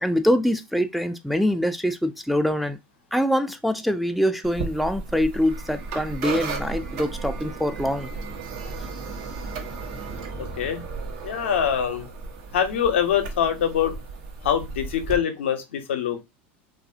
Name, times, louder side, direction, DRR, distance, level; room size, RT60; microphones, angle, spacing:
voice 1, 0.0-2.8 3.1-8.1, equal, ahead, 0.3 m, -24 dB
sound 1, 4.4-15.2, right 4 dB, 65° right, 0.9 m, -34 dB
voice 2, 10.4-10.8 11.2-12.1 12.5-13.9 14.4-16.2, left 8 dB, 80° left, 0.6 m, -24 dB
2.6 x 2.4 x 2.4 m
hypercardioid pair, 95°, 6 cm